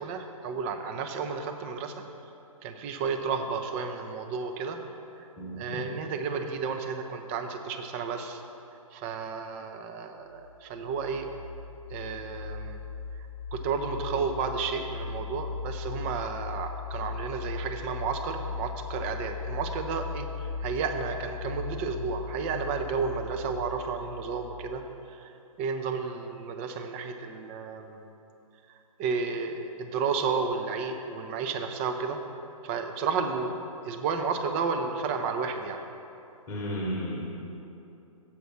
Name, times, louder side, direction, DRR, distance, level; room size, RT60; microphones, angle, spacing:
voice 1, 0.0-2.0 2.6-4.8 5.2-5.3 5.6-8.4 8.9-11.3 11.9-12.8 13.5-25.3 25.6-28.1 28.7-32.2 32.6-35.8, right 5 dB, 20° right, 6 dB, 0.5 m, -32 dB
sound 1, 10.3-24.8, left 5 dB, 80° right, 1.1 m, -38 dB
voice 2, 36.5-37.3, equal, 20° left, -3 dB, 1.1 m, -33 dB
7.2 x 5.0 x 6.2 m, 2.8 s
figure-of-eight pair, 125°, 18 cm